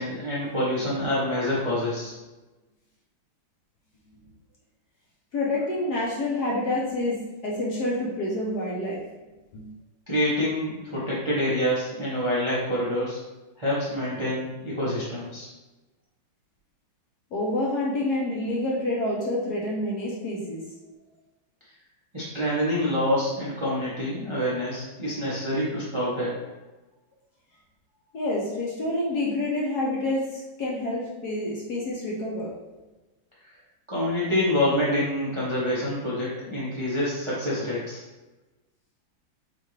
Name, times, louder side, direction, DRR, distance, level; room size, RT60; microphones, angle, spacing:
voice 1, 0.0-2.1 10.1-13.2 13.6-15.5 22.1-26.3 33.9-38.0, left 1 dB, 35° right, -8 dB, 0.4 m, -26 dB
voice 2, 5.3-9.0 9.5-9.7 17.3-20.6 28.1-32.5, left 1 dB, 60° left, -4 dB, 1.1 m, -28 dB
5.6 x 2.5 x 3.2 m, 1.1 s
omnidirectional pair, 2.3 m